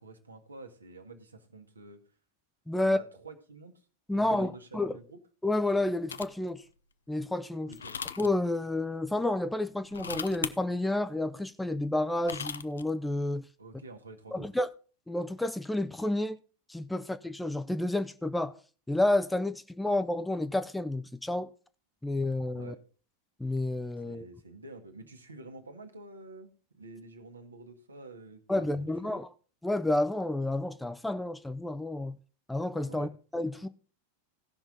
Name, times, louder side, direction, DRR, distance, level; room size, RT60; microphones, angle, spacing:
voice 1, 0.0-2.0 2.8-3.7 4.1-5.2 7.7-7.9 13.6-14.5 22.5-22.8 24.0-29.2 32.9-33.1, right 3 dB, 75° right, 1.5 m, -48 dB
voice 2, 2.7-3.0 4.1-5.0 5.4-6.6 7.1-7.8 8.2-13.5 14.3-14.7 15.1-16.4 16.7-18.6 18.9-21.5 22.0-22.7 23.4-24.2 28.5-29.3 29.6-32.2 32.5-33.7, left 2 dB, 5° left, 0.5 m, -30 dB
sound 1, 6.1-6.5 7.7-8.3 9.8-10.5 12.0-12.8, left 6 dB, 70° left, 0.5 m, -37 dB
17.0 x 5.9 x 3.9 m
figure-of-eight pair, 90°, 0 cm